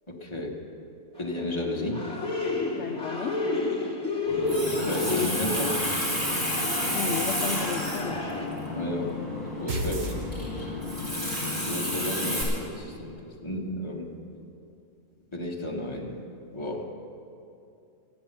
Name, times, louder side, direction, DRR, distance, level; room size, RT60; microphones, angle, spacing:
voice 1, 0.1-0.5 1.2-2.1 4.8-5.8 8.7-9.1 9.6-10.2 11.6-13.1 13.4-14.1 15.3-16.2 16.5-16.9, left 1 dB, 20° left, -2 dB, 1.7 m, -32 dB
sound 1, 1.2-8.5, left 2 dB, 5° left, 2.1 m, -32 dB
voice 2, 2.7-3.4 6.9-8.3, left 6 dB, 60° left, 5 dB, 0.8 m, -33 dB
Water tap faucet, 4.3-12.4, left 1 dB, 30° right, 4.5 m, -30 dB
sound 2, 9.7-11.0, right 1 dB, 65° right, 1.6 m, -32 dB
14.0 x 10.5 x 6.8 m, 2.6 s
omnidirectional pair, 1.5 m